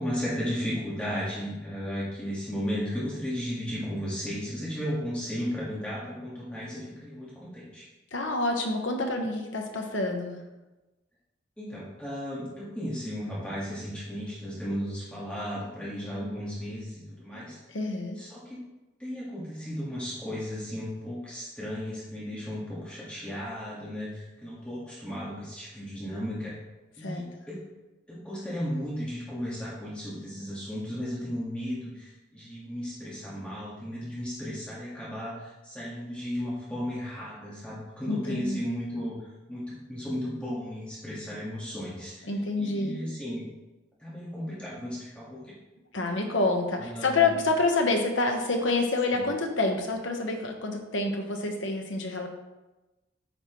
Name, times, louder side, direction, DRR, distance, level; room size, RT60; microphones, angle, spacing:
voice 1, 0.0-7.8 11.6-17.6 18.2-18.6 19.0-26.5 27.0-27.6 28.1-39.2 39.5-42.3 42.6-43.5 44.0-45.5 46.8-47.4 49.1-49.2, equal, 5° left, -7 dB, 1.7 m, -35 dB
voice 2, 8.1-10.4 17.7-18.2 27.0-27.2 38.1-38.6 42.2-42.9 45.9-52.3, left 3 dB, 80° left, 3 dB, 1.1 m, -27 dB
8.8 x 6.0 x 3.1 m, 1.1 s
head